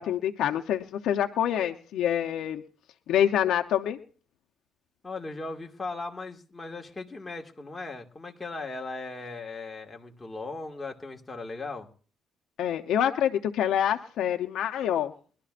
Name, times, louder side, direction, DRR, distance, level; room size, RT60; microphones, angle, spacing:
voice 1, 0.0-2.6 3.1-4.0 12.6-15.1, left 10 dB, 80° left, 5 dB, 0.7 m, -26 dB
voice 2, 5.0-11.9, left 3 dB, 20° left, 2 dB, 1.9 m, -38 dB
23.0 x 12.0 x 2.5 m, 0.40 s
cardioid pair, 90°, 0 cm